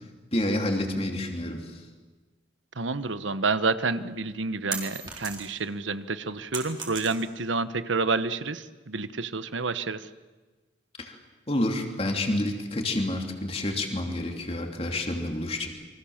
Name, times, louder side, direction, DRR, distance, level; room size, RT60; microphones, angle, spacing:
voice 1, 0.3-1.8 11.0-11.2 11.5-15.7, left 1 dB, 30° left, 3 dB, 3.1 m, -29 dB
voice 2, 2.8-10.1, right 3 dB, 85° right, 13 dB, 1.1 m, -29 dB
sound 1, 3.9-5.7 6.1-7.5, right 5 dB, 25° right, 4.1 m, -37 dB
28.5 x 24.5 x 7.3 m, 1.3 s
head